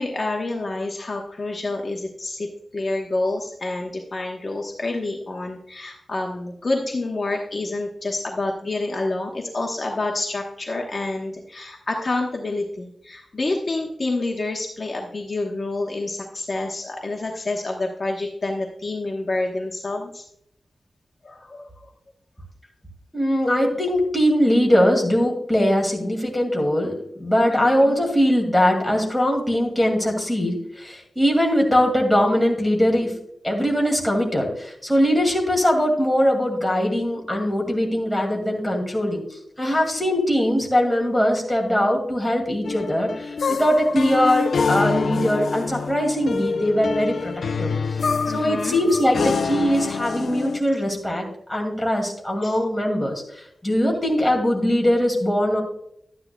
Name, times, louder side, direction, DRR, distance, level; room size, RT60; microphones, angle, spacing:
voice 1, 0.0-2.5 2.7-20.2 21.2-21.9 27.5-28.0 48.3-48.8 52.4-52.6, left 2 dB, 35° left, 0 dB, 1.1 m, -28 dB
voice 2, 23.1-33.2 33.4-39.2 39.6-47.3 47.6-47.7 48.3-55.6, equal, 5° left, 0 dB, 2.3 m, -21 dB
sound 1, 42.6-50.6, left 5 dB, 65° left, 0.5 m, -26 dB
12.0 x 9.7 x 2.3 m, 0.73 s
wide cardioid pair, 135°, 0 cm